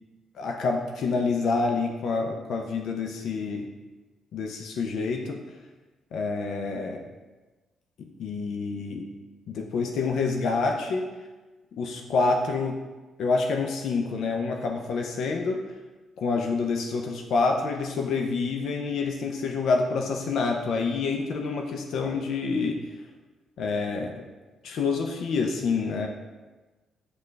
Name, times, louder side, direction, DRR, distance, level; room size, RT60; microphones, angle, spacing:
voice 1, 0.3-3.7 4.3-5.4 6.1-7.0 8.0-9.1 9.5-11.1 11.8-12.7 13.2-15.6 16.2-22.8 23.6-24.2 24.6-26.1, left 4 dB, 70° left, 2 dB, 0.4 m, -27 dB
5.9 x 2.3 x 3.2 m, 1.2 s
cardioid pair, 120°, 0 cm